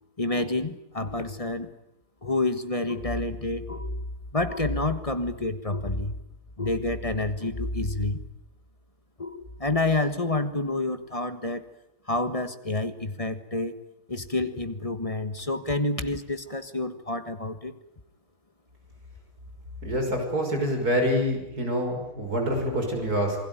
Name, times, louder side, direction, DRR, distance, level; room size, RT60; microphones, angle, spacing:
voice 1, 0.2-1.7 2.2-4.0 4.3-6.1 6.6-8.2 9.2-11.6 12.1-13.7 14.1-17.7, left 2 dB, 20° left, 9 dB, 1.5 m, -28 dB
voice 2, 19.8-23.4, equal, 70° right, 3 dB, 6.4 m, -26 dB
28.0 x 20.5 x 9.3 m, 0.83 s
omnidirectional pair, 1.7 m